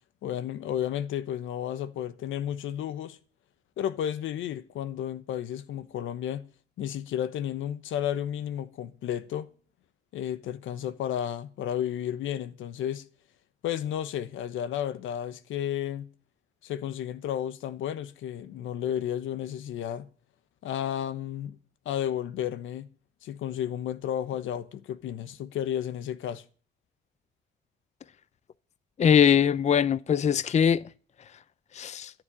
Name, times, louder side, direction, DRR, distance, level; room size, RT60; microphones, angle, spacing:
voice 1, 0.2-3.2 3.8-6.5 6.8-9.5 10.1-13.0 13.6-16.1 16.6-20.1 20.6-21.6 21.8-22.9 23.2-26.4, left 10 dB, 80° left, 1.1 m, -32 dB
voice 2, 29.0-30.8 31.8-32.1, left 8 dB, 35° left, 0.5 m, -21 dB
13.5 x 8.0 x 7.5 m
cardioid pair, 90°, 20 cm